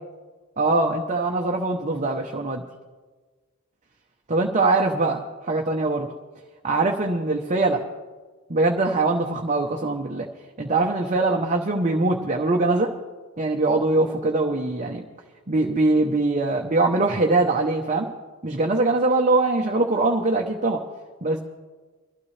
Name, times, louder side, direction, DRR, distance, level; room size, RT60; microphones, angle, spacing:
voice 1, 0.6-2.6 4.3-6.1 6.6-7.8 8.5-10.3 10.6-12.9 13.4-15.0 15.5-18.1 18.4-20.8 21.2-21.4, right 2 dB, 35° right, 1 dB, 0.8 m, -22 dB
22.5 x 12.5 x 3.3 m, 1.3 s
head